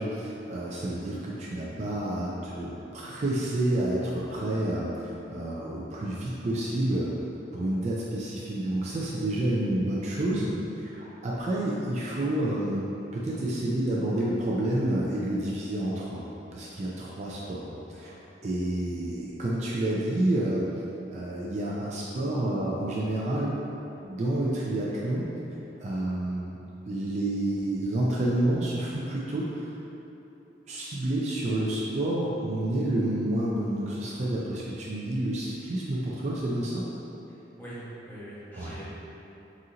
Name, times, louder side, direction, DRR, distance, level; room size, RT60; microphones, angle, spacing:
voice 1, 0.0-7.1 7.5-16.2 16.5-17.7 18.0-18.2 18.4-20.7 21.1-23.5 24.0-25.3 25.8-26.6 26.9-29.7 30.7-36.9 38.5-38.8, right 1 dB, 40° right, -5 dB, 0.4 m, -29 dB
voice 2, 37.3-38.8, right 1 dB, 10° left, -11 dB, 1.1 m, -43 dB
4.2 x 2.5 x 3.7 m, 3.0 s
head